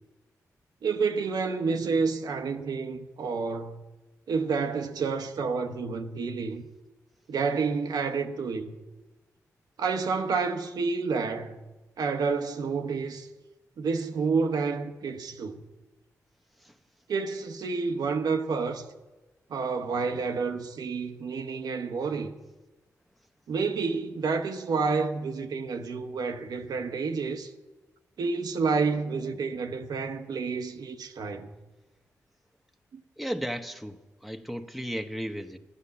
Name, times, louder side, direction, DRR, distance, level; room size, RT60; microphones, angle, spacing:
voice 1, 0.8-3.8 4.3-6.6 7.3-8.8 9.8-11.5 12.0-13.3 13.8-15.6 17.1-18.9 19.5-22.3 23.5-27.5 28.2-31.5 32.9-33.0, right 4 dB, 75° right, 1.1 m, -29 dB
voice 2, 33.2-35.6, equal, ahead, 1.1 m, -35 dB
12.5 x 9.8 x 7.1 m
supercardioid pair, 45°, 7 cm